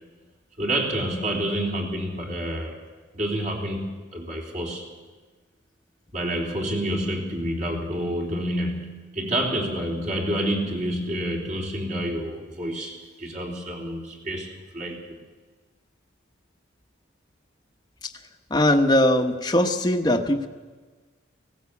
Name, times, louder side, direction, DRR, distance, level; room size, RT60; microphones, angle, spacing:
voice 1, 0.6-2.8 3.1-4.8 6.1-15.2, right 1 dB, 40° right, -1 dB, 3.5 m, -28 dB
voice 2, 18.5-20.5, left 1 dB, 20° left, 3 dB, 1.1 m, -20 dB
18.5 x 16.5 x 8.5 m, 1.4 s
head